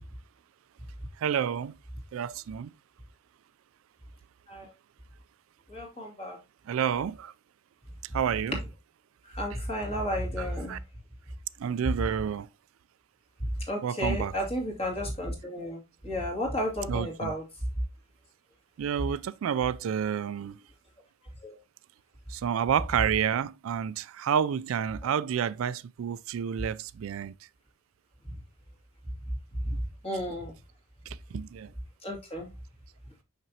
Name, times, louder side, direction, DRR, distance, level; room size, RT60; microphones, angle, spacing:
voice 1, 1.2-1.7 2.1-2.7 6.7-7.3 8.1-8.6 10.4-10.8 11.6-12.5 13.8-14.3 16.9-17.3 18.8-20.6 22.3-27.3 31.1-31.7, right 8 dB, 80° right, 0.3 m, -29 dB
voice 2, 5.7-6.4 9.2-10.8 13.7-17.4 21.4-21.6 29.6-29.7 30.0-30.5 32.0-32.5, equal, 30° left, 2.2 m, -32 dB
6.0 x 5.9 x 2.7 m
head